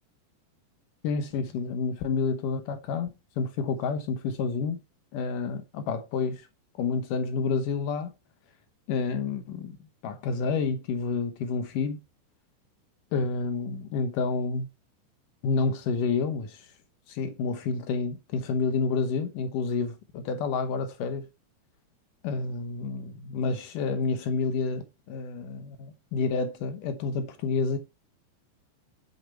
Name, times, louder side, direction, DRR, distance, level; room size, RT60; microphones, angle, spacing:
voice 1, 1.0-3.1 3.4-4.8 5.1-6.5 6.8-8.1 8.9-9.8 10.0-12.0 13.1-14.7 15.4-16.7 17.1-21.3 22.2-27.8, left 4 dB, 85° left, 1.8 m, -29 dB
11.5 x 6.6 x 4.5 m
omnidirectional pair, 5.3 m